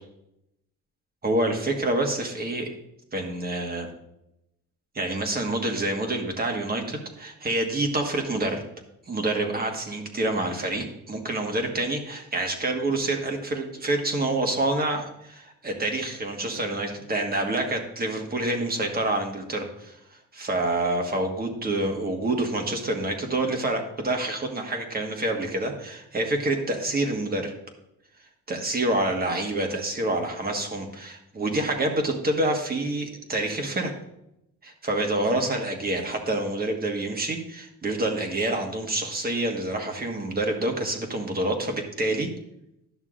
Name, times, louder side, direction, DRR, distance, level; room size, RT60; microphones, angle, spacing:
voice 1, 1.2-2.7 3.1-3.9 4.9-8.6 9.1-20.0 20.3-27.5 28.5-33.9 34.6-42.3, right 2 dB, 30° right, 3 dB, 1.5 m, -27 dB
11.5 x 6.4 x 2.5 m, 0.82 s
cardioid pair, 90°, 30 cm